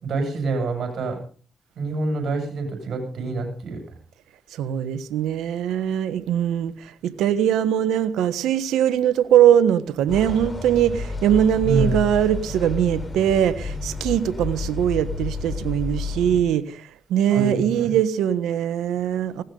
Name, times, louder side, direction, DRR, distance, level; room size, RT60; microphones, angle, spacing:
voice 1, 0.0-1.2 1.8-3.8 11.6-12.0 17.3-17.9, right 3 dB, 70° right, 3 dB, 7.0 m, -26 dB
voice 2, 4.5-19.4, right 10 dB, 90° right, 14 dB, 1.2 m, -21 dB
sound 1, 10.1-16.4, left 4 dB, 30° left, 5.6 m, -30 dB
19.0 x 17.5 x 3.9 m, 0.40 s
supercardioid pair, 55°, 0 cm